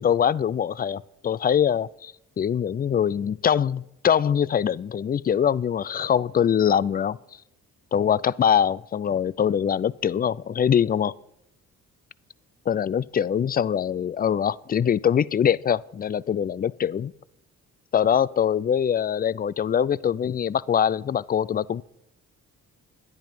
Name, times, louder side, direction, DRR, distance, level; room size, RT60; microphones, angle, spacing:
voice 1, 0.0-7.2 7.9-11.1 12.7-17.1 17.9-21.8, left 8 dB, 25° left, 0.4 m, -23 dB
12.0 x 10.5 x 5.4 m
hypercardioid pair, 45°, 36 cm